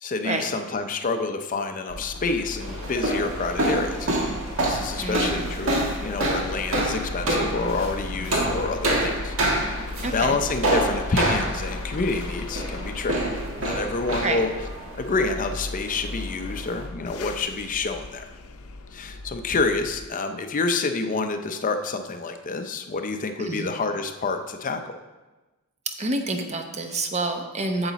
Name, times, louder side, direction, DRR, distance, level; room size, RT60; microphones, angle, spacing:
voice 1, 0.0-4.3 4.6-13.3 13.6-14.5 14.9-18.3 18.9-25.0, left 3 dB, 40° left, 7 dB, 0.5 m, -28 dB
sound 1, 1.9-20.1, left 2 dB, 80° left, 0.6 m, -36 dB
sound 2, 2.6-16.9, right 1 dB, 65° right, 1.7 m, -28 dB
voice 2, 5.0-5.5 10.0-10.4 14.2-14.4 23.4-23.7 25.9-27.9, right 2 dB, 30° right, 5 dB, 0.8 m, -28 dB
8.7 x 7.1 x 4.0 m, 1.2 s
head